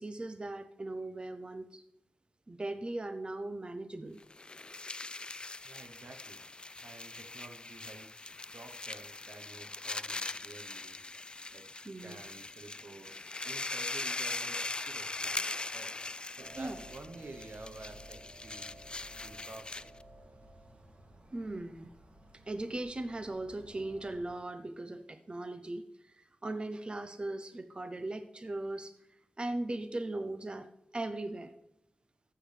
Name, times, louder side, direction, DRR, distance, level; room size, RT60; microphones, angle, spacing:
voice 1, 0.0-1.8 2.5-4.2 11.8-12.2 16.6-16.8 21.3-21.9 22.3-31.5, right 2 dB, 35° right, 10 dB, 0.6 m, -39 dB
sound 1, 4.2-20.0, left 3 dB, 30° left, 0.3 m, -41 dB
voice 2, 5.6-11.0 11.5-19.9, right 3 dB, 75° right, 7 dB, 1.0 m, -51 dB
sound 2, 16.4-24.3, right 1 dB, 55° right, 2.5 m, -54 dB
13.0 x 7.7 x 3.3 m, 0.81 s
wide cardioid pair, 70°, 3 cm